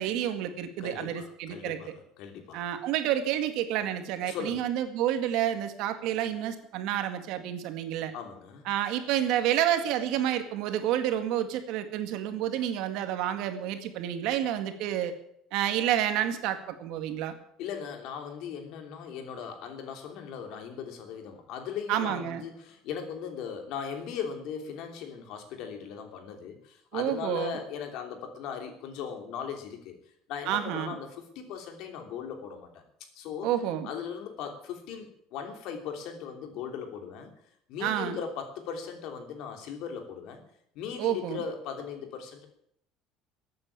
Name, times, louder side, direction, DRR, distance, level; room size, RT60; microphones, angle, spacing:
voice 1, 0.0-1.8 2.5-8.1 8.7-15.1 15.5-17.3 21.9-22.4 26.9-27.6 30.5-30.9 33.4-33.9 37.8-38.2 41.0-41.4, right 11 dB, 65° right, 8 dB, 1.9 m, -29 dB
voice 2, 0.8-2.7 4.2-4.6 8.1-8.7 17.6-30.0 30.3-32.8 33.1-33.5 33.8-37.3 37.7-40.4 40.7-42.5, left 7 dB, 60° left, 5 dB, 3.1 m, -38 dB
14.5 x 8.8 x 8.8 m, 0.71 s
cardioid pair, 160°, 0 cm